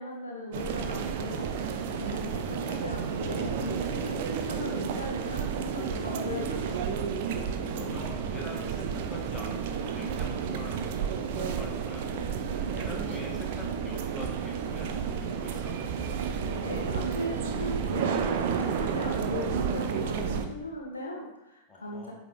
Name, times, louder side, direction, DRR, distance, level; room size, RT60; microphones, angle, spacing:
voice 1, 0.0-1.5 2.0-6.8 16.4-22.1, left 1 dB, 80° left, 0 dB, 0.9 m, -38 dB
sound 1, 0.5-20.4, right 7 dB, 50° right, 0.5 m, -31 dB
voice 2, 1.9-2.7 7.4-12.1 12.4-15.8 21.7-22.1, left 1 dB, 15° left, -2 dB, 1.7 m, -44 dB
8.1 x 3.7 x 3.5 m, 0.90 s
figure-of-eight pair, 90°, 0 cm